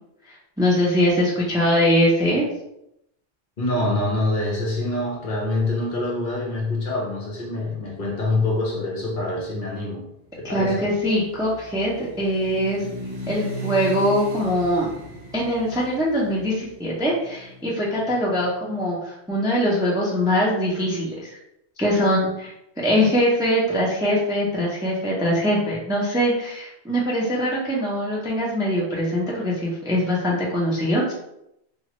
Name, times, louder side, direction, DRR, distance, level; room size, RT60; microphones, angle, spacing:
voice 1, 0.6-2.4 10.4-12.9 13.3-14.9 15.3-21.4 21.8-31.1, equal, 5° right, -4 dB, 0.4 m, -22 dB
voice 2, 3.6-10.1 10.3-10.9, left 2 dB, 55° left, -2 dB, 0.8 m, -25 dB
sound 1, 10.5-18.5, right 1 dB, 55° right, 0.8 m, -37 dB
3.0 x 2.3 x 2.9 m, 0.81 s
omnidirectional pair, 1.1 m